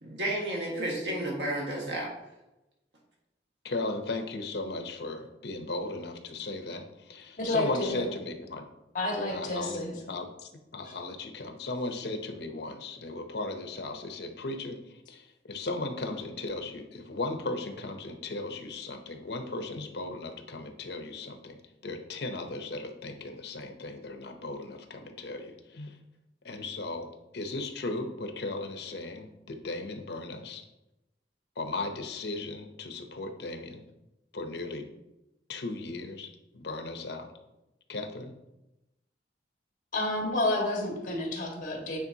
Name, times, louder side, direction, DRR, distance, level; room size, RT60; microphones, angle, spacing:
voice 1, 0.0-2.1, right 1 dB, 80° right, -3 dB, 1.6 m, -32 dB
voice 2, 3.6-8.7 9.3-9.8 10.1-26.0 26.4-30.6 31.6-33.8 34.3-34.9 35.5-37.3 37.9-38.3, left 2 dB, 70° left, 5 dB, 0.7 m, -36 dB
voice 3, 7.4-8.0 8.9-9.9 10.8-10.9 39.9-42.0, left 2 dB, 50° left, 0 dB, 1.6 m, -30 dB
8.8 x 3.9 x 2.7 m, 0.95 s
head